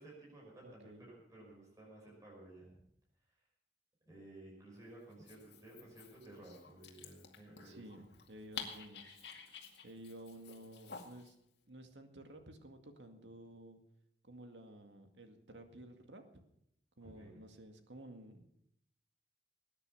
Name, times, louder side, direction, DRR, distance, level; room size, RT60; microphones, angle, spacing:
voice 1, 0.0-2.8 4.0-8.0 17.0-17.4, right 1 dB, 20° right, -4 dB, 6.0 m, -55 dB
voice 2, 0.6-1.1 7.6-9.2 9.8-11.4 11.7-13.8 14.2-16.5 17.0-18.5, right 1 dB, 85° right, 6 dB, 2.1 m, -53 dB
Dog, 5.1-11.3, left 6 dB, 65° left, 2.3 m, -51 dB
19.5 x 9.8 x 7.0 m, 0.76 s
head